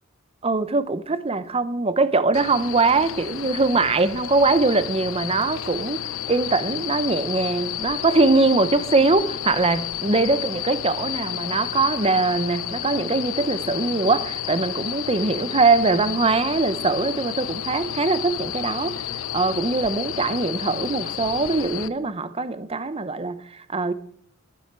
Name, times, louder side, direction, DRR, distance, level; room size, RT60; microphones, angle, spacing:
voice 1, 0.4-19.0 19.3-23.9, right 3 dB, 25° right, 0.8 m, -22 dB
sound 1, 2.3-21.9, left 10 dB, 65° left, 0.6 m, -31 dB
13.0 x 7.9 x 6.7 m
head